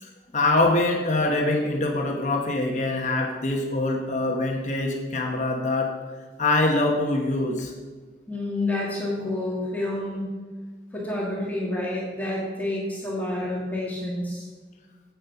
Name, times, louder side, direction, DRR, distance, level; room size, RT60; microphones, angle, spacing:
voice 1, 0.0-5.9 6.4-7.7, left 2 dB, 45° left, 1 dB, 1.0 m, -24 dB
voice 2, 8.3-10.3 10.9-14.5, left 1 dB, 10° left, -5 dB, 1.8 m, -29 dB
8.3 x 7.3 x 5.7 m, 1.4 s
head